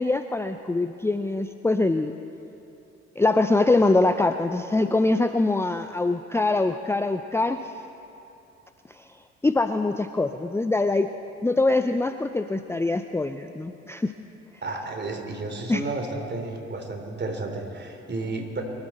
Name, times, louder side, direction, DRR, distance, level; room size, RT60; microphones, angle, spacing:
voice 1, 0.0-2.1 3.2-7.6 9.4-11.1 11.4-14.1 15.7-15.8, left 2 dB, 10° left, 8 dB, 0.6 m, -23 dB
voice 2, 14.6-18.6, right 3 dB, 35° right, 3 dB, 3.3 m, -32 dB
24.0 x 13.0 x 4.3 m, 2.8 s
hypercardioid pair, 50°, 32 cm